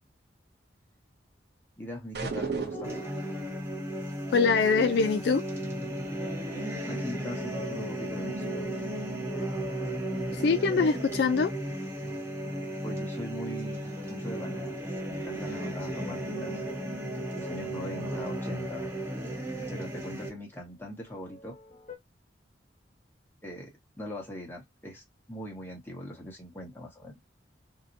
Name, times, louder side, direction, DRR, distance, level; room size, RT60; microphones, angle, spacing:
voice 1, 1.8-3.0 6.5-8.7 12.8-16.6 17.3-18.9 19.7-21.6 23.4-27.1, left 1 dB, 10° left, 1.0 m, -41 dB
sound 1, 2.1-3.2, right 4 dB, 60° right, 0.6 m, -33 dB
sound 2, 2.2-11.1 11.6-20.6 20.8-22.0, equal, 40° left, 1.1 m, -50 dB
sound 3, 2.8-20.3, right 1 dB, 15° right, 0.8 m, -35 dB
voice 2, 4.3-5.4 10.3-11.5, left 4 dB, 60° left, 0.3 m, -24 dB
2.7 x 2.1 x 2.6 m
head